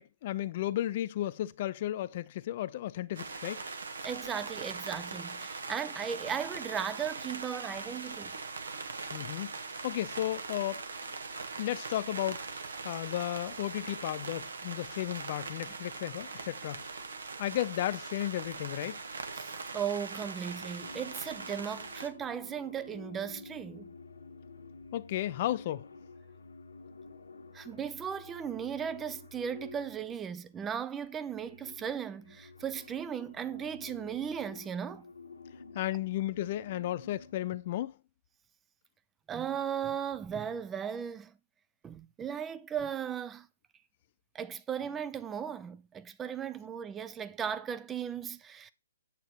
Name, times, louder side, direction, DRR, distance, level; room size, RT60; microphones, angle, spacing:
voice 1, 0.0-3.6 9.1-9.5 9.8-10.8 11.6-12.4 12.8-16.8 17.4-19.0 24.9-25.9 35.7-38.0, left 13 dB, 45° left, 0.5 m, -34 dB
sound 1, 3.1-22.1, right 4 dB, 75° right, 1.2 m, -41 dB
voice 2, 4.0-8.3 19.4-23.9 27.5-35.0 39.3-41.3 41.8-43.5 44.3-48.7, right 8 dB, 15° right, 0.5 m, -37 dB
sound 2, 20.5-30.5 31.0-37.6, left 3 dB, 85° left, 1.4 m, -51 dB
8.4 x 6.8 x 3.0 m
hypercardioid pair, 135°, 0 cm